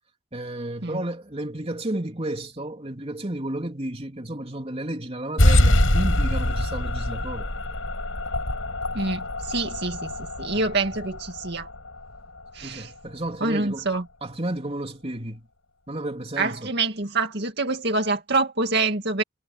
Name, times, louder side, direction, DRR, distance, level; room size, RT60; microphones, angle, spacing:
voice 1, 0.3-7.5 10.5-10.6 12.6-13.9 14.2-15.5 15.9-16.7, right 1 dB, 30° right, 3.2 m, -32 dB
sound 1, 5.4-12.5, left 1 dB, 85° left, 6.8 m, -24 dB
voice 2, 8.9-11.7 12.5-12.9 13.4-14.1 16.4-19.2, right 3 dB, 55° right, 2.2 m, -26 dB
head